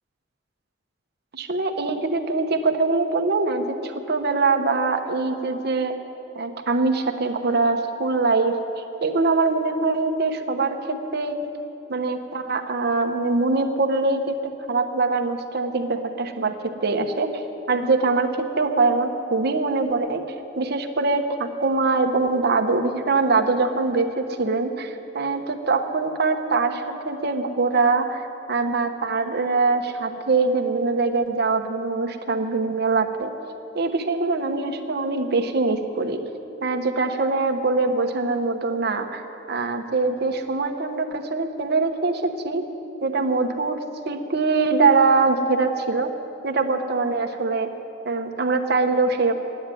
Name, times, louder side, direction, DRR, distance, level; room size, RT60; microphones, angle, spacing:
voice 1, 1.3-5.9 6.3-8.6 9.0-11.5 11.9-17.4 17.7-20.2 20.6-28.2 28.5-33.3 33.7-36.2 36.6-42.6 43.0-43.8 44.1-46.1 46.4-47.7 48.0-49.3, right 3 dB, 60° right, 6 dB, 1.0 m, -23 dB
12.0 x 9.2 x 9.8 m, 2.9 s
head